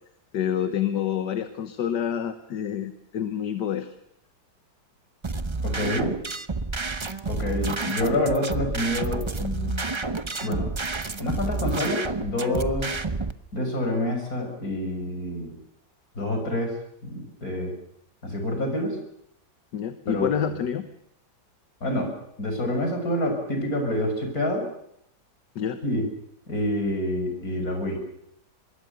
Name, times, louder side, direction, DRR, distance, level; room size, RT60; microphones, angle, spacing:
voice 1, 0.3-3.9 19.7-20.8 25.6-25.8, left 9 dB, 80° left, 9 dB, 1.7 m, -27 dB
sound 1, 5.2-13.3, right 3 dB, 25° right, 0.6 m, -30 dB
voice 2, 5.6-6.1 7.3-9.8 10.4-10.7 11.2-12.9 13.5-15.5 16.2-16.8 17.0-17.7 18.2-19.0 20.1-20.4 21.8-24.6 25.8-26.0 26.5-28.0, left 1 dB, 55° left, 4 dB, 7.1 m, -27 dB
25.0 x 22.0 x 6.8 m, 0.74 s
omnidirectional pair, 1.8 m